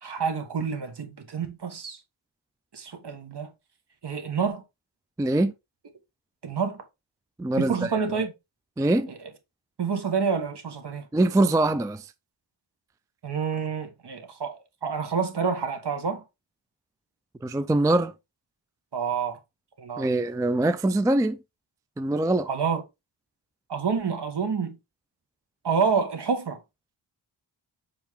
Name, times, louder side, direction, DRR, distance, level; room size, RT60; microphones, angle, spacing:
voice 1, 0.0-2.0 2.7-3.5 4.0-4.6 6.4-6.8 7.6-8.3 9.1-9.2 9.8-11.1 13.2-16.2 18.9-19.4 19.8-20.1 22.5-22.8 23.7-24.8 25.6-26.6, right 6 dB, 60° right, 1.7 m, -28 dB
voice 2, 5.2-5.5 7.4-8.1 8.8-9.1 11.1-12.1 17.4-18.1 20.0-21.4 22.0-22.5, right 2 dB, 10° right, 0.3 m, -23 dB
7.3 x 4.7 x 3.7 m
wide cardioid pair, 125°, 46 cm